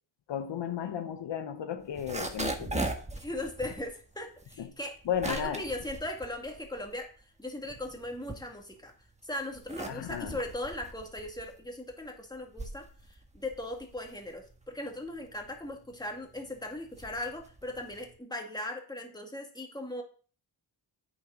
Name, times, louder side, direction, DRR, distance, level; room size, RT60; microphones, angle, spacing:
voice 1, 0.3-2.9 4.6-4.7 5.1-5.6 9.9-10.4, left 8 dB, 75° left, 0.9 m, -34 dB
sound 1, 1.8-7.1 7.5-8.9 9.4-18.2, right 2 dB, 15° right, 1.3 m, -40 dB
voice 2, 3.2-5.0 5.3-8.9 9.2-20.0, left 1 dB, 10° left, 1.9 m, -38 dB
8.5 x 6.4 x 3.7 m
cardioid pair, 90°, 44 cm